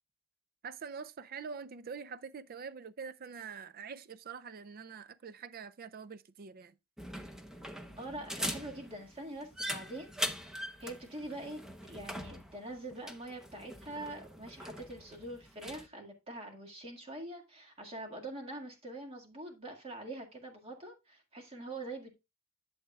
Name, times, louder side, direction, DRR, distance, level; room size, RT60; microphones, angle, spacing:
voice 1, 0.6-6.8, right 5 dB, 45° right, 0.4 m, -45 dB
sound 1, 7.0-15.9, equal, 5° right, 0.8 m, -42 dB
voice 2, 8.0-11.6 11.9-22.1, right 1 dB, 30° right, 1.9 m, -44 dB
11.0 x 7.2 x 2.3 m
head